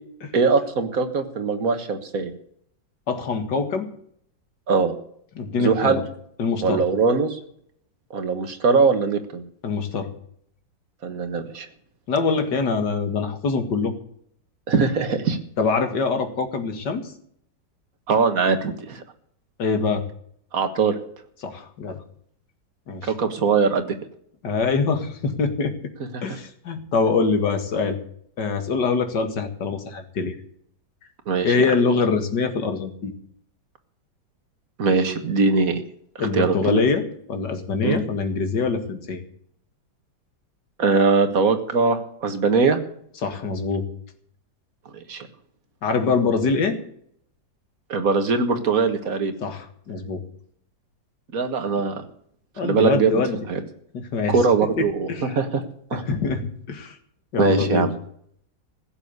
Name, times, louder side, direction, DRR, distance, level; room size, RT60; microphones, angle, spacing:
voice 1, 0.3-2.3 4.7-4.9 5.6-6.0 6.6-7.4 8.1-9.4 11.0-11.7 14.7-15.4 18.1-19.0 20.5-21.0 23.0-24.0 26.1-26.2 31.3-31.5 34.8-35.8 36.3-36.8 37.8-38.0 40.8-42.8 44.9-45.3 47.9-49.3 51.3-52.0 52.6-53.2 53.5-53.6 54.3-55.1 55.3-55.6 55.9-56.0 57.4-57.9, right 4 dB, 50° right, 7 dB, 1.9 m, -21 dB
voice 2, 3.1-3.9 5.4-6.0 6.4-6.8 9.6-10.1 12.1-13.9 15.6-17.1 19.6-20.0 21.4-22.0 22.9-23.1 24.4-25.7 26.2-28.0 28.4-30.4 31.4-33.1 36.2-39.2 43.2-43.9 45.8-46.8 49.4-50.2 52.6-53.4 53.9-54.4 54.8-55.4 55.9-57.0 57.3-57.9, left 4 dB, 65° left, 7 dB, 2.5 m, -24 dB
16.0 x 7.3 x 9.7 m, 0.65 s
omnidirectional pair, 2.0 m